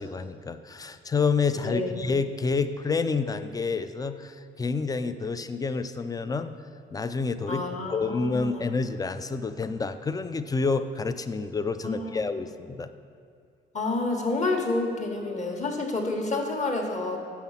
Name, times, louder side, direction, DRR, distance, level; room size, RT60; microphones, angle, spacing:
voice 1, 0.0-6.5 6.9-7.6 7.9-12.9, left 4 dB, 20° left, 11 dB, 0.4 m, -28 dB
voice 2, 1.5-1.9 7.5-8.6 11.8-12.2 13.7-17.2, left 2 dB, 35° left, 2 dB, 1.3 m, -29 dB
7.3 x 5.8 x 5.7 m, 2.3 s
cardioid pair, 90°, 20 cm